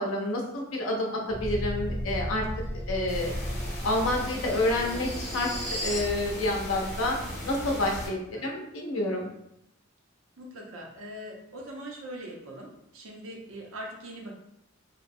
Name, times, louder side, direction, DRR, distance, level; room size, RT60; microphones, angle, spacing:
voice 1, 0.0-2.4 2.9-3.3 3.8-5.5 5.8-7.2 7.4-9.3, left 1 dB, 75° left, 0 dB, 0.6 m, -28 dB
sound 1, 1.3-6.1, equal, 5° left, 0.5 m, -35 dB
sound 2, 3.1-8.1, left 1 dB, 35° left, 0.7 m, -37 dB
voice 2, 8.1-8.5 10.4-14.3, right 1 dB, 80° right, -1 dB, 0.6 m, -42 dB
2.8 x 2.0 x 2.6 m, 0.79 s
head